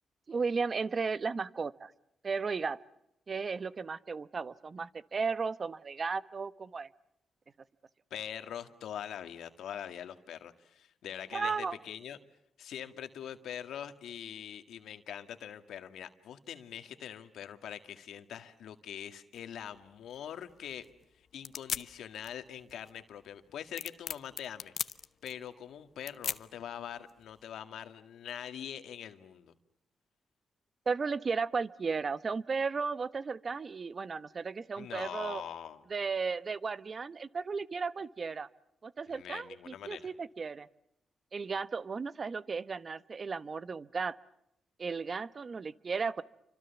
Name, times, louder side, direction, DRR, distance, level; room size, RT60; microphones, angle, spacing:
voice 1, 0.3-1.9 2.2-2.8 3.3-6.9 11.3-11.8 30.9-35.4 35.9-38.5 38.8-40.7 41.3-44.2 44.8-46.2, right 5 dB, 45° right, 15 dB, 1.0 m, -35 dB
voice 2, 8.1-12.2 12.6-20.9 21.2-24.7 25.2-29.5 34.8-35.8 39.1-40.1, left 9 dB, 85° left, 8 dB, 1.9 m, -43 dB
sound 1, 19.3-27.4, left 7 dB, 65° left, 0.9 m, -42 dB
29.0 x 26.0 x 7.1 m, 0.82 s
cardioid pair, 70°, 0 cm